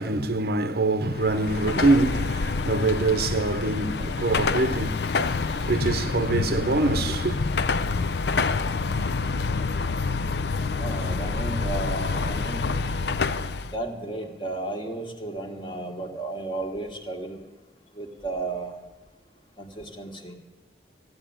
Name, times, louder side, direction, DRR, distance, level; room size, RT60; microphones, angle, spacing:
voice 1, 0.0-7.4, right 2 dB, 60° right, 0.8 m, -25 dB
Car passing by / Traffic noise roadway noise / Engine, 1.1-13.8, left 4 dB, 70° left, 0.5 m, -27 dB
voice 2, 10.8-12.7 13.6-17.4 17.9-18.8 19.6-20.3, right 2 dB, 25° left, 1.7 m, -33 dB
14.5 x 9.7 x 8.8 m
head